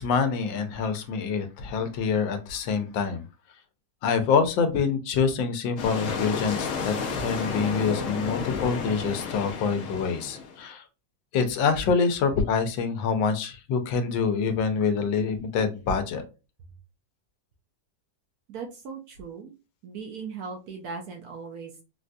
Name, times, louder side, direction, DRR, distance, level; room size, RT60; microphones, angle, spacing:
voice 1, 0.0-3.2 4.0-10.8 11.3-16.2, left 5 dB, 90° left, 8 dB, 1.4 m, -26 dB
sound 1, 5.8-10.6, left 5 dB, 70° left, 0.7 m, -32 dB
voice 2, 18.5-19.5 19.8-21.8, right 5 dB, 70° right, 2 dB, 0.9 m, -38 dB
4.0 x 2.5 x 2.2 m, 0.30 s
omnidirectional pair, 2.0 m